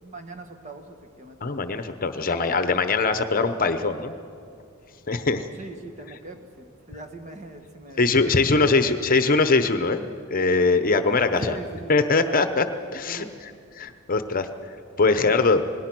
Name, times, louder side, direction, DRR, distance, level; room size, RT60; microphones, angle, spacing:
voice 1, 0.0-1.8 5.5-9.4 11.3-12.4 13.1-13.6 15.2-15.3, right 2 dB, 35° right, 6 dB, 1.6 m, -42 dB
voice 2, 1.4-4.1 5.1-5.5 8.0-10.0 10.3-11.5 11.9-12.6 12.9-13.3 13.8-14.5 15.0-15.6, left 3 dB, 40° left, 9 dB, 0.9 m, -21 dB
27.5 x 19.0 x 6.2 m, 2.3 s
head